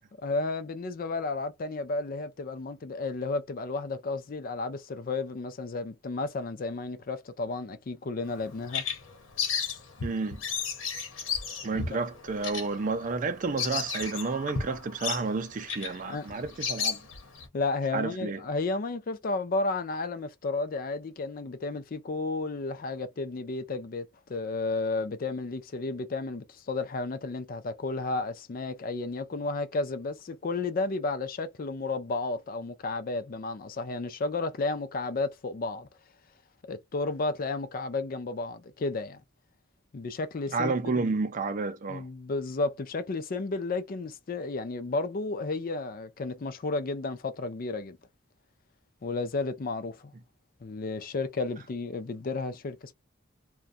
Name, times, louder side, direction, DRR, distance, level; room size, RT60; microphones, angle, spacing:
voice 1, 0.2-8.8 11.7-11.8 16.1-16.3 17.5-35.9 36.6-39.2 39.9-41.1 41.9-48.0 49.0-50.1 50.6-52.9, left 3 dB, 45° left, 0.5 m, -32 dB
Bird vocalization bird call bird song, 8.3-17.5, left 6 dB, 85° left, 1.0 m, -34 dB
voice 2, 10.0-10.4 11.6-17.0 17.9-18.4 40.5-42.0, right 4 dB, 40° right, 0.4 m, -30 dB
2.5 x 2.2 x 2.5 m
head